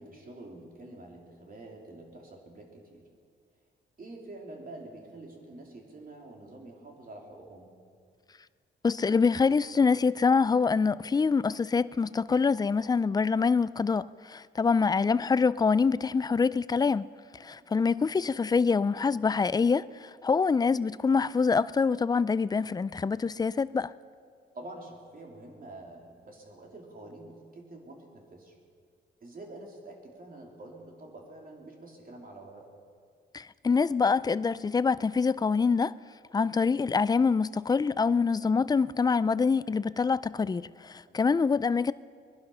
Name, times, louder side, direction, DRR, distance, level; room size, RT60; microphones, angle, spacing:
voice 1, 0.0-3.0 4.0-7.7 17.6-17.7 24.5-28.5 29.2-32.7 41.1-41.2, right 2 dB, 40° right, 3.0 m, -47 dB
voice 2, 8.8-17.1 17.4-23.9 33.3-35.9 36.3-41.9, left 5 dB, 20° left, 0.3 m, -25 dB
21.0 x 11.5 x 5.5 m
cardioid pair, 95°, 21 cm